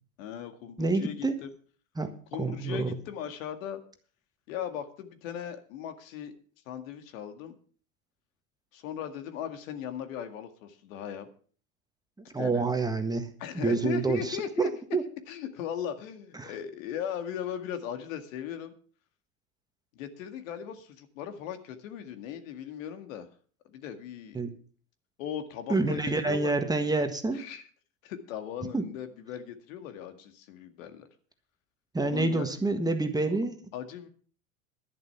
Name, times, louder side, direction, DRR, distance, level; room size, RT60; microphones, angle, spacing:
voice 1, 0.2-1.5 2.3-3.8 4.5-6.3 6.7-7.5 8.7-11.3 12.4-12.6 13.4-14.7 15.3-18.7 20.0-23.3 23.6-24.4 25.2-26.5 27.3-27.7 28.0-31.1 32.0-32.5 33.7-34.1, left 9 dB, 70° left, 8 dB, 2.1 m, -38 dB
voice 2, 0.8-1.4 2.0-3.0 12.3-13.3 13.5-15.0 16.4-16.5 24.3-24.5 25.7-27.4 28.7-28.8 31.9-33.5, right 3 dB, 10° right, 7 dB, 1.5 m, -28 dB
11.0 x 11.0 x 5.8 m, 0.43 s
supercardioid pair, 105°, 40 cm